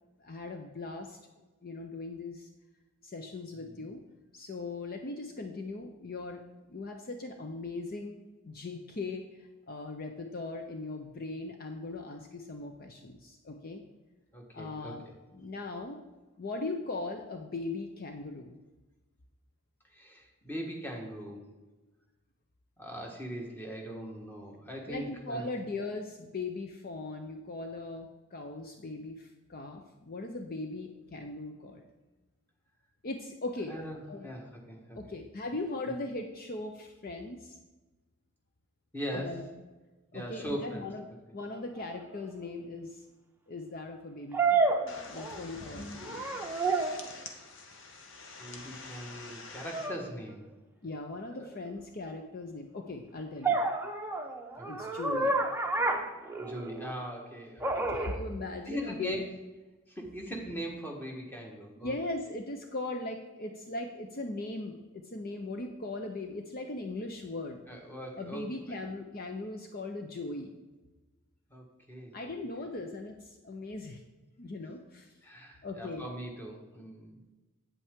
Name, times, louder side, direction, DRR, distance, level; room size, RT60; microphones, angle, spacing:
voice 1, 0.2-1.2 1.6-2.5 3.0-4.0 4.3-6.4 6.7-8.2 8.4-13.8 14.5-15.0 15.3-16.0 16.4-18.6 24.9-31.9 33.0-33.7 34.1-34.3 34.9-37.6 39.1-39.5 40.1-43.0 43.5-44.7 45.1-46.4 50.8-53.6 54.7-55.4 57.9-59.2 61.8-67.6 68.2-70.5 72.1-74.0 74.4-75.1 75.6-76.0, left 2 dB, 45° left, 4 dB, 0.6 m, -39 dB
voice 2, 3.5-3.8 14.3-15.1 19.8-21.4 22.8-25.5 33.7-35.0 38.9-39.5 40.1-40.8 48.4-50.4 51.3-51.6 54.6-54.9 56.4-58.0 58.6-59.3 59.9-61.9 67.7-68.8 71.5-72.2 75.2-77.2, equal, 10° left, 1 dB, 1.4 m, -40 dB
sound 1, 41.9-42.0 44.3-45.6 46.0-47.1 49.7-50.0 53.4-56.9 57.6-58.2, right 3 dB, 10° right, 0.7 m, -30 dB
sound 2, 44.9-49.9, left 3 dB, 60° left, 1.0 m, -46 dB
8.5 x 8.2 x 3.6 m, 1.2 s
head